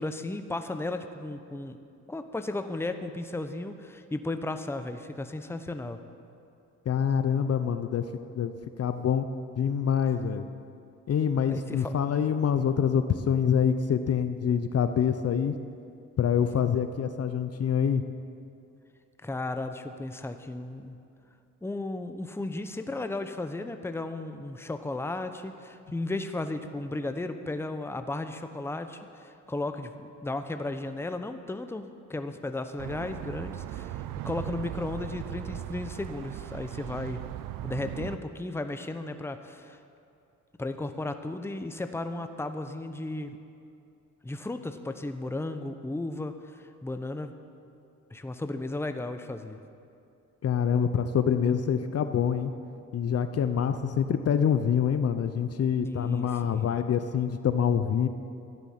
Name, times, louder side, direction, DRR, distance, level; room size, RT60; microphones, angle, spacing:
voice 1, 0.0-1.8 2.1-6.0 11.5-11.9 19.2-21.0 21.6-31.8 32.1-37.2 37.6-39.8 40.6-43.4 44.2-47.3 48.1-49.6 55.8-56.7, left 2 dB, 5° left, 8 dB, 0.8 m, -35 dB
voice 2, 6.9-8.0 8.3-9.3 9.6-10.5 11.1-15.6 16.2-18.0 50.4-52.5 52.9-58.1, left 8 dB, 50° left, 10 dB, 0.7 m, -26 dB
sound 1, 32.8-38.2, right 12 dB, 80° right, 0.5 m, -38 dB
14.0 x 10.5 x 5.8 m, 2.5 s
cardioid pair, 85°, 33 cm